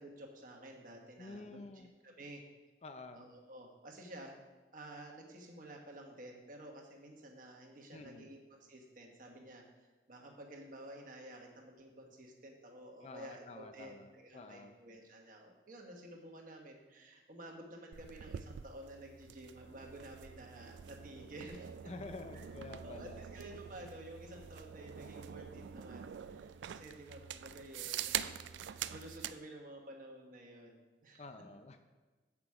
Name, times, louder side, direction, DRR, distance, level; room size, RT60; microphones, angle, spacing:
voice 1, 0.0-2.4 3.1-4.4 4.7-9.6 10.1-21.7 22.3-22.5 22.8-31.2, right 1 dB, 50° right, 1 dB, 1.3 m, -52 dB
voice 2, 1.2-1.9 2.8-3.2 7.9-8.3 13.0-14.7 21.8-23.2 31.2-31.8, left 3 dB, 35° left, 8 dB, 0.5 m, -49 dB
sound 1, 17.9-29.4, right 9 dB, 85° right, 0.3 m, -45 dB
8.2 x 6.0 x 4.8 m, 1.3 s
head